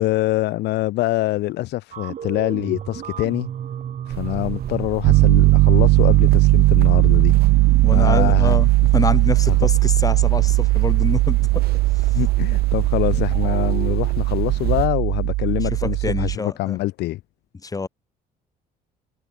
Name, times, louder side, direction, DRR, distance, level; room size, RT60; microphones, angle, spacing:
voice 1, 0.0-3.5 4.1-7.3 7.9-8.6 9.5-9.6 12.1-17.2, left 17 dB, 80° left, 4.5 m, -24 dB
sound 1, 1.9-12.8 13.1-14.2, right 9 dB, 50° right, 1.7 m, -36 dB
sound 2, 4.1-14.9, right 14 dB, 65° right, 1.5 m, -31 dB
Piano, 5.0-16.4, right 21 dB, 85° right, 0.5 m, -17 dB
voice 2, 7.8-11.6 15.8-16.8 17.6-17.9, left 4 dB, 20° left, 1.5 m, -26 dB
cardioid pair, 110°, 17 cm